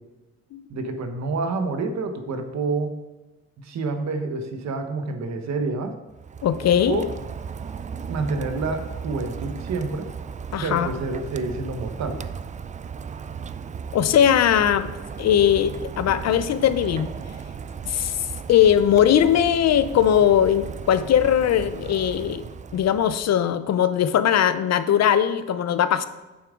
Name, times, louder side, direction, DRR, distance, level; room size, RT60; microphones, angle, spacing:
voice 1, 0.7-2.9 3.6-5.9 6.9-7.1 8.1-10.1 10.6-12.2, right 3 dB, 60° right, 6 dB, 1.2 m, -28 dB
Rain, 6.1-23.4, right 6 dB, 25° right, 0.3 m, -36 dB
voice 2, 6.4-7.1 10.5-10.9 13.9-14.9 15.2-17.1 17.9-18.2 18.5-22.4 22.7-26.1, left 9 dB, 60° left, 12 dB, 0.6 m, -20 dB
8.8 x 7.0 x 3.7 m, 1.1 s
cardioid pair, 90°, 30 cm